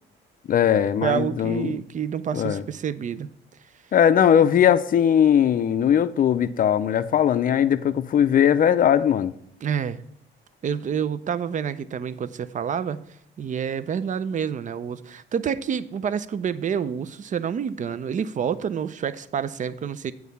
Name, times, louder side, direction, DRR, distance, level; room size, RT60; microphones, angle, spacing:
voice 1, 0.5-1.8 2.3-2.6 3.9-9.3, left 9 dB, 45° left, 0.5 m, -19 dB
voice 2, 1.0-3.3 9.6-10.0 10.6-13.0 13.4-20.1, right 7 dB, 40° right, 0.5 m, -28 dB
8.2 x 4.7 x 5.4 m
cardioid pair, 90°, 20 cm